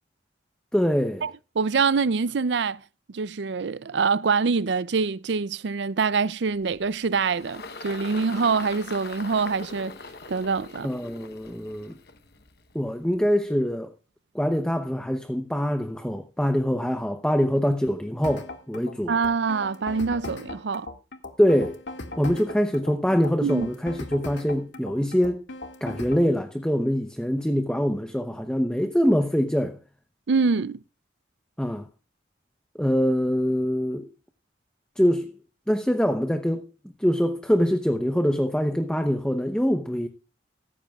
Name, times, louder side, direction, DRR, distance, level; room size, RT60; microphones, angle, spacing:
voice 1, 0.7-1.2 10.8-12.0 12.7-13.9 14.3-19.1 21.4-21.8 22.2-25.4 25.8-29.8 31.6-31.8 32.8-34.1 35.0-35.3 35.7-36.7 37.0-40.1, equal, 5° left, 0.7 m, -24 dB
voice 2, 1.6-2.8 3.1-10.0 10.3-10.9 19.1-20.9 23.4-23.7 30.3-30.8, right 5 dB, 70° right, 0.5 m, -25 dB
Engine, 6.6-13.2, left 4 dB, 55° left, 1.0 m, -42 dB
sound 1, 18.2-26.3, left 2 dB, 75° left, 2.0 m, -38 dB
15.5 x 13.5 x 2.4 m
head